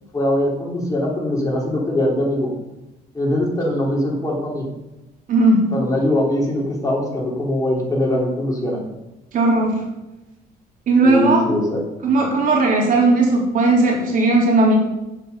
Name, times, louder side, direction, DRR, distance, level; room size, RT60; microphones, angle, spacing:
voice 1, 0.1-2.5 3.1-4.7 5.7-8.8 11.0-11.8, left 1 dB, 20° left, -3 dB, 3.6 m, -21 dB
voice 2, 5.3-5.7 9.3-9.8 10.9-11.4 12.0-14.7, right 2 dB, 55° right, -2 dB, 3.5 m, -16 dB
9.8 x 8.0 x 5.6 m, 0.99 s
cardioid pair, 110°, 17 cm